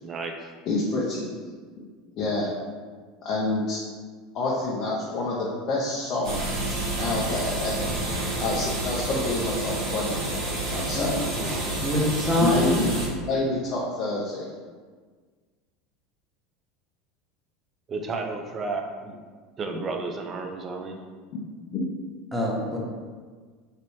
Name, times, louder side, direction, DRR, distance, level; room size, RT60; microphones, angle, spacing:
voice 1, 0.0-0.5 11.2-11.6 17.9-19.2 19.6-21.0, right 3 dB, 35° right, 4 dB, 0.4 m, -33 dB
voice 2, 0.7-1.3 2.2-2.5 3.2-3.8 4.3-7.9 8.4-10.2 10.7-11.2 12.4-14.5 21.7-21.8, left 2 dB, 50° left, -5 dB, 0.6 m, -28 dB
sound 1, 6.2-13.1, right 1 dB, 65° right, 1.0 m, -29 dB
voice 3, 11.8-12.7 22.3-22.8, left 1 dB, 10° right, -3 dB, 0.8 m, -24 dB
3.2 x 2.6 x 2.9 m, 1.5 s
hypercardioid pair, 80°, 0 cm